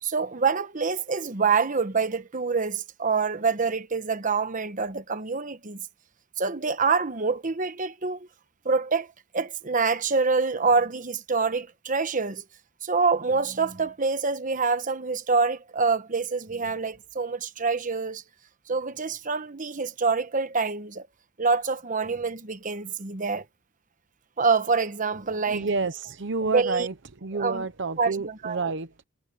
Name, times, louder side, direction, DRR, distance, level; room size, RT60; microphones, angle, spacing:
voice 1, 0.0-5.8 6.4-8.3 8.6-9.1 9.3-12.4 12.8-18.2 18.7-21.1 21.4-23.4 24.4-25.7 26.5-26.9 27.3-27.7 28.0-28.6, right 4 dB, 40° right, 1.1 m, -26 dB
voice 2, 25.3-26.9 27.2-29.0, right 4 dB, 60° right, 0.9 m, -29 dB
head